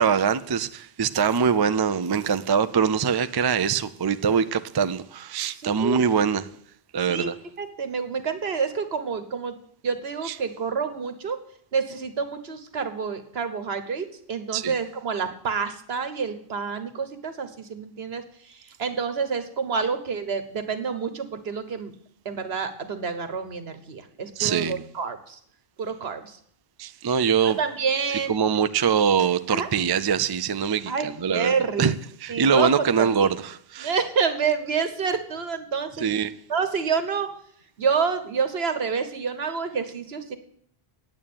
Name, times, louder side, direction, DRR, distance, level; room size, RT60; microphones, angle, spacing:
voice 1, 0.0-6.5 6.9-7.3 10.2-10.3 14.5-14.7 24.4-24.8 26.8-27.6 28.3-31.5 31.8-31.9 32.2-33.9 36.0-36.3, right 6 dB, 35° right, 0.4 m, -23 dB
voice 2, 5.6-6.0 7.1-7.3 7.6-9.5 9.8-11.4 11.7-21.9 22.2-25.4 25.8-26.4 27.4-28.3 29.5-29.7 30.9-31.9 32.3-33.3 33.8-36.0 36.5-37.3 37.8-40.4, right 5 dB, 75° right, 1.5 m, -28 dB
9.0 x 8.9 x 8.7 m
omnidirectional pair, 1.0 m